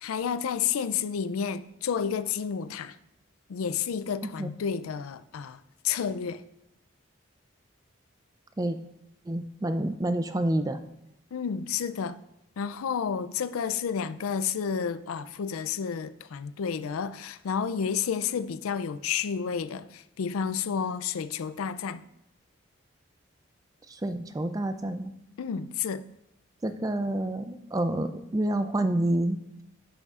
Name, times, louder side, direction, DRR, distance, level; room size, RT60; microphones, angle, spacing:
voice 1, 0.0-3.0 3.5-5.6 5.8-6.4 11.3-12.2 12.6-22.0 25.4-26.0, left 7 dB, 90° left, 0.4 m, -30 dB
voice 2, 9.3-10.8 23.9-25.1 26.6-29.4, right 1 dB, 15° right, 0.3 m, -28 dB
10.0 x 6.6 x 2.4 m
head